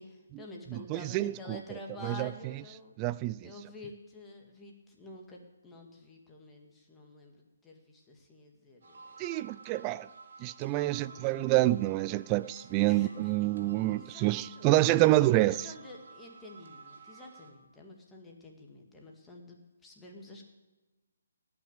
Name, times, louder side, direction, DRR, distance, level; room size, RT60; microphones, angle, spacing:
voice 1, 0.0-2.9 3.4-9.5 10.9-11.4 12.9-13.4 13.8-14.7 15.0-20.5, left 2 dB, 10° left, 2.0 m, -49 dB
voice 2, 0.7-1.6 2.0-2.3 3.0-3.5 9.2-10.1 10.4-15.7, right 17 dB, 20° right, 0.3 m, -27 dB
sound 1, 8.8-17.5, right 4 dB, 55° right, 3.0 m, -53 dB
18.5 x 6.1 x 8.9 m
figure-of-eight pair, 150°, 0 cm